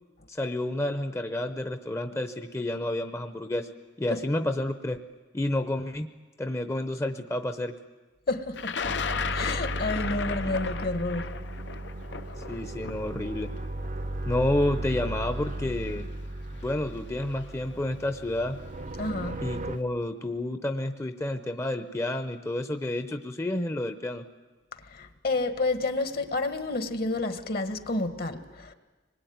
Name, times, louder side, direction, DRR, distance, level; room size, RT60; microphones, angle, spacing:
voice 1, 0.3-3.7 4.0-5.0 5.3-6.1 6.4-7.7 12.5-13.5 14.3-16.1 16.6-18.6 19.4-24.2, left 1 dB, 15° left, 0.7 m, -30 dB
voice 2, 8.3-8.8 9.2-11.3 19.0-19.4 24.9-28.7, left 2 dB, 55° left, 1.4 m, -30 dB
Thunder, 8.6-14.6 15.5-15.6 16.7-17.0 17.3-17.8, left 6 dB, 75° left, 0.7 m, -35 dB
sound 1, 8.8-19.8, right 1 dB, 45° right, 0.7 m, -36 dB
25.0 x 20.5 x 9.4 m
head